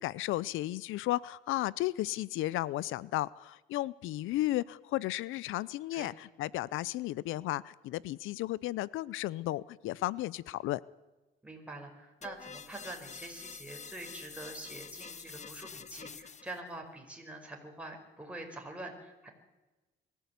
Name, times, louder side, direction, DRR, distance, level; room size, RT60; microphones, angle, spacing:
voice 1, 0.0-10.8, left 16 dB, 90° left, 21 dB, 0.6 m, -34 dB
voice 2, 11.4-19.3, right 2 dB, 5° right, 1 dB, 4.9 m, -45 dB
sound 1, 12.2-16.6, left 6 dB, 35° left, 1.1 m, -47 dB
23.0 x 14.0 x 8.3 m, 1.1 s
cardioid pair, 90°, 20 cm